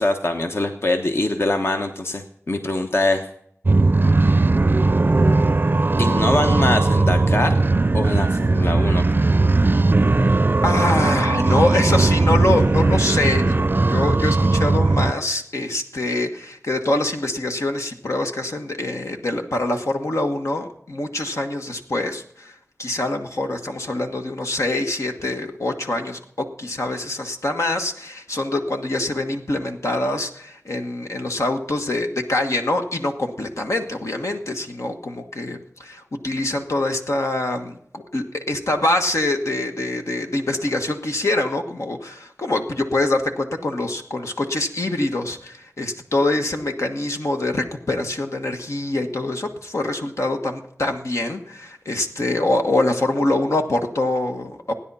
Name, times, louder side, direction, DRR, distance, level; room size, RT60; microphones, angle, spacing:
voice 1, 0.0-3.3 6.0-7.5 7.9-9.0, left 2 dB, 55° left, 5 dB, 1.2 m, -23 dB
sound 1, 3.7-15.1, right 3 dB, 40° right, 0.5 m, -18 dB
voice 2, 10.6-22.5 22.8-54.7, left 2 dB, 75° left, 4 dB, 1.4 m, -24 dB
16.0 x 9.9 x 5.5 m, 0.69 s
wide cardioid pair, 50°, 5 cm